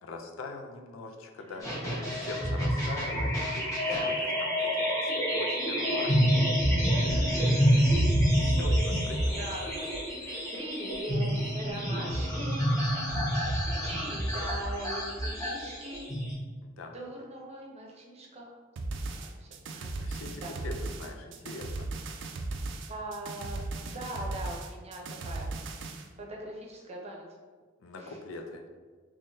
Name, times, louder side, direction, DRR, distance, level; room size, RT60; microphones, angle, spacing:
voice 1, 0.0-6.4 8.3-9.8 13.1-13.4 16.6-16.9 20.0-21.9 27.8-28.7, left 2 dB, 80° left, 3 dB, 0.5 m, -42 dB
voice 2, 1.4-2.7 3.9-4.1 6.9-8.0 8.5-8.7 9.4-9.9 10.2-12.9 13.8-16.2 16.9-18.5 19.1-20.1 20.4-20.5 22.9-23.6 23.9-25.5 26.2-27.2 28.0-28.2, right 1 dB, 35° right, -1 dB, 0.7 m, -41 dB
sound 1, 1.6-16.3, equal, 15° left, 1.1 m, -27 dB
sound 2, 18.8-26.1, right 2 dB, 65° right, 0.4 m, -37 dB
3.8 x 3.0 x 2.7 m, 1.5 s
head